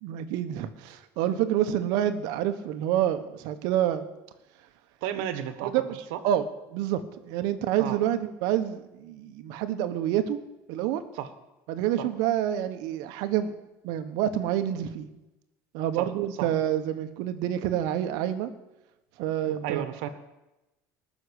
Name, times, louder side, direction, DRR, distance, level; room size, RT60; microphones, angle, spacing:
voice 1, 0.0-4.1 5.6-6.0 6.2-10.4 10.7-11.0 11.7-13.5 13.8-15.1 15.7-18.5 19.2-19.8, right 11 dB, 70° right, 10 dB, 1.2 m, -28 dB
voice 2, 5.0-5.7 6.1-6.2 7.8-8.0 11.1-11.3 12.0-12.1 15.9-16.1 16.4-16.5 19.5-20.1, right 10 dB, 85° right, 11 dB, 1.5 m, -33 dB
19.5 x 6.5 x 8.2 m, 0.98 s
cardioid pair, 150°, 7 cm